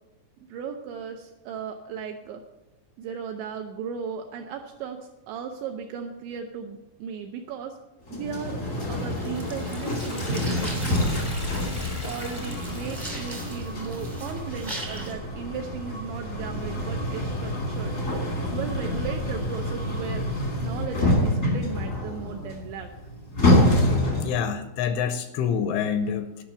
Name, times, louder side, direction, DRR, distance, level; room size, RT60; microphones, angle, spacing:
voice 1, 0.5-2.4 3.0-7.8 8.1-8.6 8.9-11.3 12.0-18.0 18.5-20.2 20.6-22.9, right 6 dB, 80° right, 4 dB, 2.6 m, -36 dB
sound 1, 8.1-24.5, left 1 dB, 55° left, 0.8 m, -27 dB
sound 2, 8.4-15.1, right 1 dB, 25° right, 0.6 m, -41 dB
Liquid, 9.0-13.7, equal, 20° left, 0.7 m, -37 dB
voice 2, 23.7-26.4, left 7 dB, 80° left, 10 dB, 2.9 m, -28 dB
12.0 x 6.0 x 8.9 m, 0.98 s
omnidirectional pair, 5.9 m